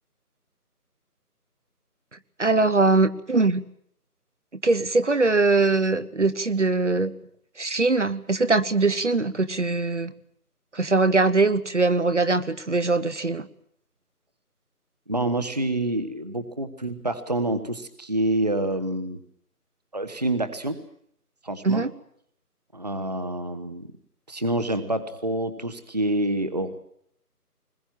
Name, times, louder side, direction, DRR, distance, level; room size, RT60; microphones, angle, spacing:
voice 1, 2.4-3.6 4.6-7.1 7.6-10.1 10.7-13.5 21.6-21.9, right 3 dB, 50° right, 13 dB, 1.3 m, -22 dB
voice 2, 15.1-19.2 19.9-20.8 21.4-21.8 22.7-23.9 24.3-26.8, right 1 dB, 25° right, 11 dB, 1.1 m, -27 dB
22.0 x 21.0 x 9.0 m, 0.67 s
figure-of-eight pair, 170°, 47 cm